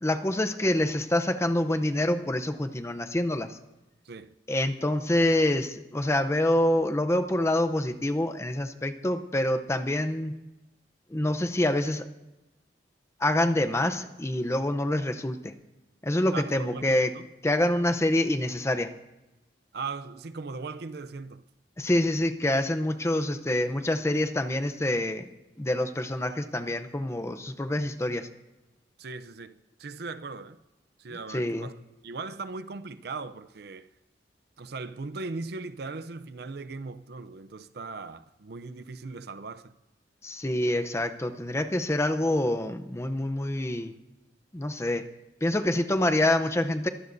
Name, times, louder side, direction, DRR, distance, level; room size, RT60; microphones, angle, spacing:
voice 1, 0.0-3.6 4.5-10.4 11.1-12.1 13.2-15.5 16.0-17.1 17.4-18.9 21.8-25.3 25.6-28.3 31.3-31.7 40.2-43.9 44.5-45.0 45.4-46.9, left 1 dB, 15° left, 0.7 m, -26 dB
voice 2, 16.3-17.3 19.7-21.4 29.0-30.6 31.0-31.8 32.0-33.9 34.6-39.7, right 4 dB, 65° right, 0.6 m, -38 dB
22.5 x 15.0 x 2.6 m
head